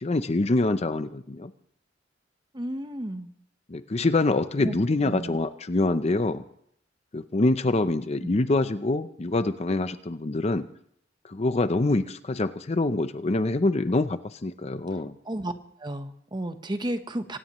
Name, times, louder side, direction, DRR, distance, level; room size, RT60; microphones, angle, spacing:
voice 1, 0.0-1.5 3.7-6.4 7.1-10.7 11.2-15.2, left 2 dB, 35° left, 11 dB, 0.6 m, -25 dB
voice 2, 2.5-3.3 4.6-4.8 5.0-5.4 8.2-8.3 15.2-15.5 15.8-17.4, right 1 dB, 25° right, 8 dB, 1.0 m, -32 dB
25.5 x 17.0 x 3.1 m, 0.69 s
head